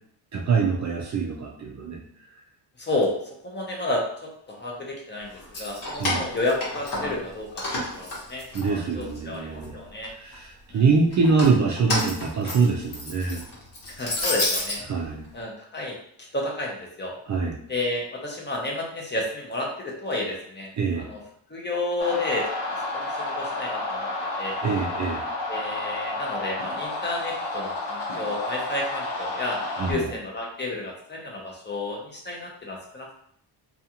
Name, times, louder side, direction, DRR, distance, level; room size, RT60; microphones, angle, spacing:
voice 1, 0.3-2.0 5.8-6.3 8.5-9.8 10.2-13.4 14.9-15.3 17.3-17.6 20.8-21.1 24.6-25.2 29.8-30.1, right 4 dB, 40° right, 0 dB, 0.4 m, -24 dB
voice 2, 2.8-3.1 3.4-5.3 5.6-7.6 7.9-10.1 10.7-10.8 13.9-14.8 15.3-15.9 16.3-17.1 17.7-20.7 21.0-21.2 21.5-24.1 24.4-24.5 25.5-33.2, left 2 dB, 25° left, -2 dB, 0.6 m, -31 dB
Keys jangling, 5.4-7.3 7.6-9.2 9.6-10.4 11.1-14.8, left 2 dB, 45° left, 1.1 m, -30 dB
sound 1, 22.0-29.9, left 2 dB, 75° left, 0.9 m, -31 dB
2.4 x 2.4 x 2.8 m, 0.67 s
cardioid pair, 110°, 45 cm